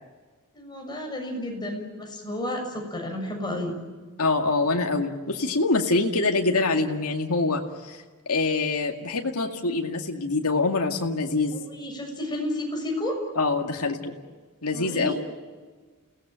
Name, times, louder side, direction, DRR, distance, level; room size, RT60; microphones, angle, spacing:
voice 1, 0.5-3.7 11.5-13.2 14.7-15.1, left 1 dB, 20° left, 2 dB, 6.8 m, -32 dB
voice 2, 4.2-11.5 13.4-14.1 14.6-15.1, left 3 dB, 90° left, 2 dB, 2.3 m, -25 dB
29.5 x 18.5 x 9.0 m, 1.4 s
head